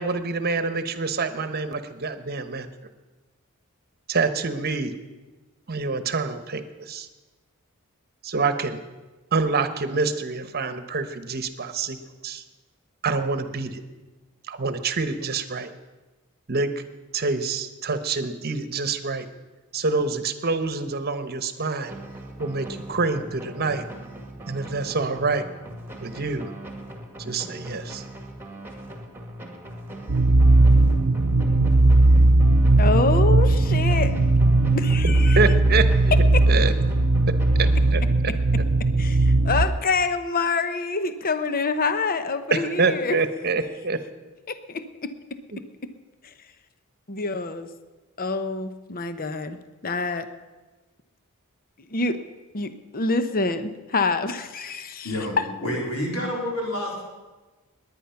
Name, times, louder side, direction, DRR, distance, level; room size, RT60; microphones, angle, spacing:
voice 1, 0.0-2.7 4.1-4.9 5.7-7.1 8.2-8.8 9.3-12.0 12.2-12.4 13.0-13.8 14.5-15.7 16.5-16.7 17.1-19.3 19.7-21.9 22.4-23.8 24.5-25.4 26.0-26.5 27.2-28.0 35.0-36.1 36.5-36.7 37.6-38.3 42.5-44.0 45.5-45.6, right 4 dB, 45° right, 10 dB, 1.1 m, -26 dB
sound 1, 21.9-38.4, right 1 dB, 10° right, 1.9 m, -40 dB
sound 2, 30.1-39.7, right 2 dB, 80° right, 0.8 m, -18 dB
voice 2, 32.8-34.2 34.7-35.4 39.0-43.2 44.5-45.1 45.8-45.9 46.2-46.3 47.1-47.7 48.2-49.6 49.8-50.3 51.9-52.2 52.5-55.1 55.4-55.5, left 4 dB, 40° left, 10 dB, 0.8 m, -26 dB
voice 3, 55.0-57.0, left 1 dB, 70° left, -2 dB, 3.9 m, -29 dB
20.0 x 9.7 x 5.8 m, 1.2 s
head